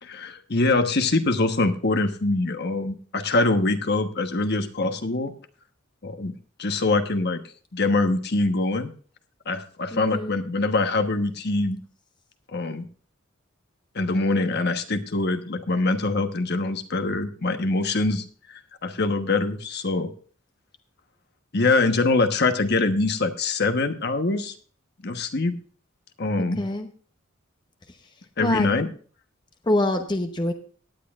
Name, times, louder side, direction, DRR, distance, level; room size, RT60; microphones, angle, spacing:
voice 1, 0.0-5.3 6.0-7.4 7.7-8.9 9.5-11.8 12.5-12.8 13.9-20.1 21.5-24.5 25.0-25.5 26.2-26.6 28.4-28.9, left 3 dB, 55° left, 7 dB, 1.2 m, -24 dB
voice 2, 9.9-10.3 26.6-26.9 28.4-28.7 29.7-30.5, left 1 dB, 20° left, 5 dB, 0.8 m, -25 dB
17.5 x 10.0 x 2.4 m, 0.43 s
head